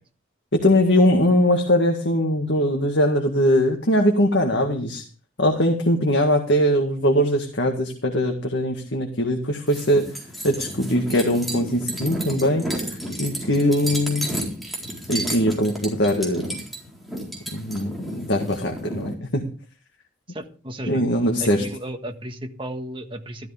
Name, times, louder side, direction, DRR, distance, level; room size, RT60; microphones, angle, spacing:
voice 1, 0.5-5.0 5.4-10.2 10.4-14.3 15.1-16.5 17.5-19.5 20.9-21.6, equal, 65° left, 3 dB, 2.0 m, -21 dB
sound 1, 9.7-19.1, right 1 dB, ahead, 4.1 m, -32 dB
voice 2, 20.3-21.0 21.4-23.5, right 1 dB, 25° right, 5 dB, 1.5 m, -34 dB
14.0 x 13.5 x 3.5 m, 0.37 s
head